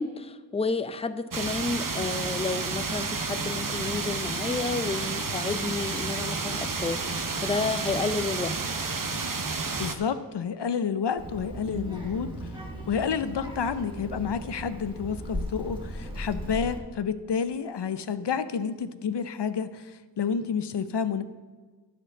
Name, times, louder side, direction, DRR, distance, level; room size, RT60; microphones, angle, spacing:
voice 1, 0.0-8.5 8.8-8.9 11.7-11.9, left 3 dB, 15° left, 12 dB, 0.5 m, -31 dB
sound 1, 1.3-9.9, right 4 dB, 55° right, 0.9 m, -31 dB
voice 2, 9.8-12.3 12.9-21.2, left 6 dB, 85° left, 12 dB, 0.6 m, -29 dB
Child speech kid speaking, 11.2-16.8, right 1 dB, 10° right, 2.0 m, -37 dB
10.5 x 6.1 x 7.1 m, 1.4 s
wide cardioid pair, 55°, 40 cm